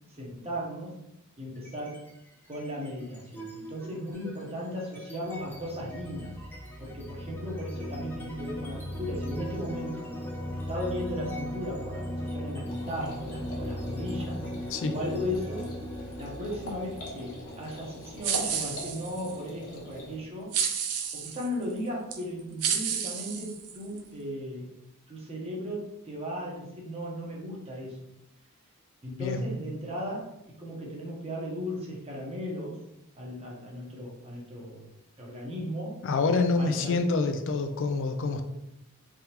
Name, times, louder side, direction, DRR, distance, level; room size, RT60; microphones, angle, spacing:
voice 1, 0.2-1.0 1.4-2.0 2.5-6.3 6.8-10.1 10.7-14.4 14.9-15.8 16.2-20.5 21.1-24.7 25.1-28.0 29.0-30.2 30.6-32.8 33.2-34.8 35.2-36.0 36.6-37.0, equal, 25° right, -3 dB, 0.9 m, -36 dB
sound 1, 1.6-2.1 2.4-19.0, equal, 10° left, 0.7 m, -38 dB
sound 2, 12.7-20.2, left 1 dB, 80° left, 1.1 m, -43 dB
sound 3, 18.2-19.3 20.5-21.5 22.1-22.2 22.6-24.0, right 7 dB, 90° right, 0.5 m, -31 dB
voice 2, 36.0-38.4, left 3 dB, 60° left, 6 dB, 0.4 m, -27 dB
3.6 x 3.4 x 2.9 m, 0.86 s
head